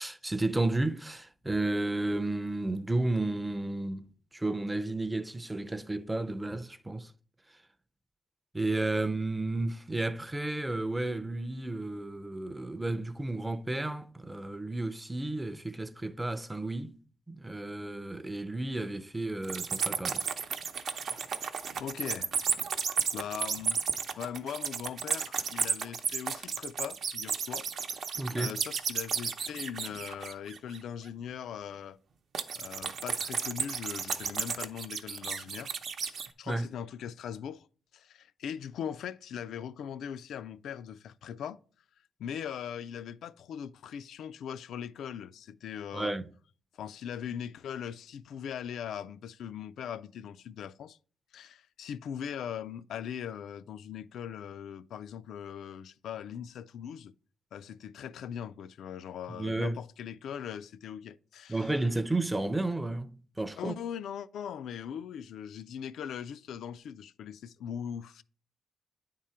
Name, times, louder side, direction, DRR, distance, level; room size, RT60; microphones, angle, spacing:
voice 1, 0.0-7.1 8.5-17.0 17.3-20.2 28.2-28.5 36.5-36.7 45.9-46.3 59.3-59.8 61.5-63.7, right 2 dB, 10° right, 0.4 m, -32 dB
sound 1, 19.4-30.8 32.3-36.3, right 6 dB, 60° right, 0.6 m, -33 dB
voice 2, 21.8-22.3 23.1-23.8 24.1-28.0 28.3-32.0 32.5-35.8 36.0-37.7 37.9-41.6 42.2-46.1 46.8-51.0 51.3-57.1 57.5-61.7 63.6-68.2, left 8 dB, 80° left, 0.3 m, -40 dB
9.3 x 3.7 x 4.3 m
cardioid pair, 130°, 0 cm